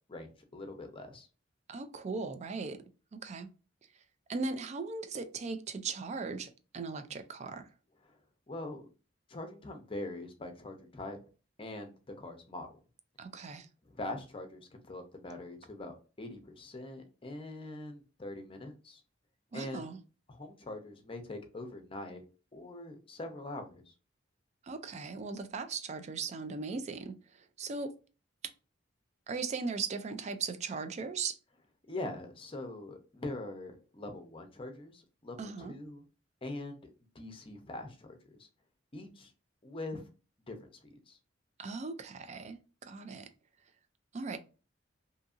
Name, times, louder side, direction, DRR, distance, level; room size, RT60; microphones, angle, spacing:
voice 1, 0.1-1.3 8.0-8.2 8.5-8.9 9.3-11.2 11.6-12.7 13.8-19.0 19.5-19.8 20.3-22.2 22.5-23.8 31.9-36.0 36.4-38.5 38.9-39.3 39.6-40.0 40.5-41.2, left 2 dB, 30° left, 0.6 m, -43 dB
voice 2, 1.7-2.8 3.1-3.5 4.3-7.7 13.2-13.7 19.5-20.0 24.6-27.9 29.3-31.4 35.4-35.8 41.6-43.3 44.1-44.4, right 4 dB, 35° right, 0.4 m, -38 dB
2.7 x 2.6 x 2.4 m
head